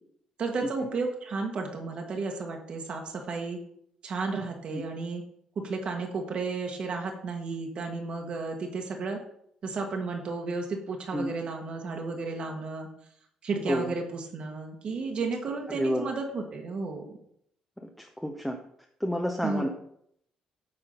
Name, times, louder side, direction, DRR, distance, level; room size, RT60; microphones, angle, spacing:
voice 1, 0.4-3.6 4.0-5.2 5.6-9.2 9.6-12.9 13.4-17.0 19.4-19.7, right 4 dB, 55° right, 2 dB, 1.3 m, -33 dB
voice 2, 15.7-16.1 18.0-18.6 19.0-19.7, equal, 5° left, 3 dB, 0.7 m, -30 dB
8.6 x 3.7 x 5.3 m, 0.71 s
cardioid pair, 95°, 2 cm